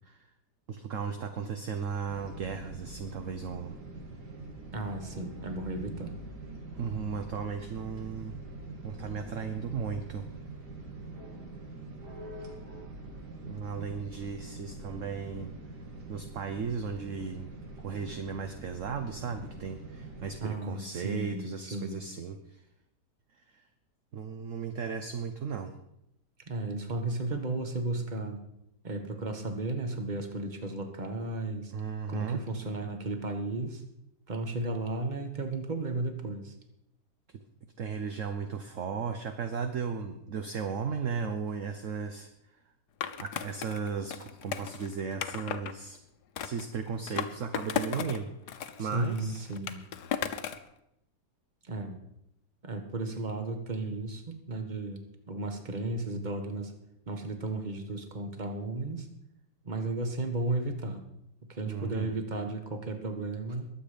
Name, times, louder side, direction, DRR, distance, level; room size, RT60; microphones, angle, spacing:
voice 1, 0.7-3.8 6.8-8.4 8.8-10.3 13.5-15.5 16.1-17.5 17.8-22.6 23.5-23.6 24.1-25.7 31.7-32.4 37.3-37.4 37.8-42.3 43.2-46.0 46.4-49.4 61.7-62.1, right 6 dB, 55° right, 7 dB, 1.1 m, -36 dB
sound 1, 2.0-20.4, right 2 dB, 70° right, 2.7 m, -44 dB
voice 2, 4.7-6.2 20.4-22.0 26.5-28.4 28.8-31.7 32.1-33.8 34.3-36.5 48.8-49.9 51.6-52.0 52.6-55.0 55.3-56.7 57.1-59.1 59.6-61.0 61.5-63.7, right 2 dB, 25° right, 6 dB, 1.5 m, -34 dB
Skateboard, 43.0-45.7 46.4-48.2 48.5-50.7, left 9 dB, 70° left, 1.4 m, -36 dB
21.5 x 8.0 x 5.2 m, 0.80 s
omnidirectional pair, 1.8 m